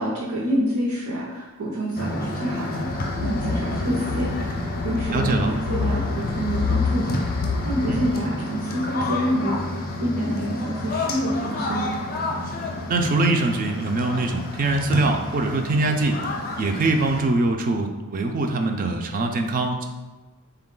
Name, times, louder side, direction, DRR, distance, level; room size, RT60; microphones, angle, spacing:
voice 1, 0.0-4.5 4.8-7.2 7.6-11.9, equal, 80° right, -6 dB, 0.7 m, -27 dB
sound 1, 2.0-17.3, left 2 dB, 40° left, 0.6 m, -30 dB
sound 2, 2.8-8.1, left 5 dB, 90° left, 0.3 m, -28 dB
voice 2, 5.1-5.5 7.9-8.1 12.9-16.2 16.6-19.9, right 2 dB, 40° right, 4 dB, 0.3 m, -23 dB
3.9 x 2.3 x 3.7 m, 1.2 s
head